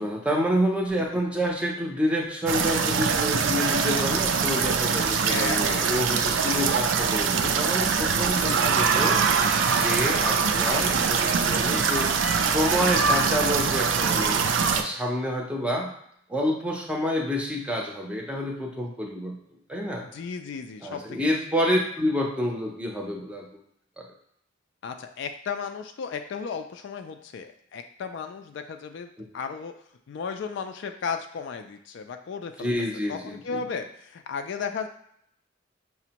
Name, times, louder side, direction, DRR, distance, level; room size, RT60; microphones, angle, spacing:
voice 1, 0.0-9.2 9.8-12.1 12.4-14.4 14.7-15.9 16.3-19.4 19.7-20.1 20.8-23.6 24.0-24.1 32.6-33.6, equal, 5° right, -1 dB, 0.6 m, -28 dB
sound 1, 2.4-14.8, right 5 dB, 65° right, 0.4 m, -23 dB
voice 2, 5.3-5.9 8.3-9.0 20.0-21.3 24.8-29.7 30.1-32.7 33.1-34.9, left 5 dB, 65° left, 6 dB, 0.3 m, -35 dB
5.9 x 2.1 x 2.8 m, 0.71 s
head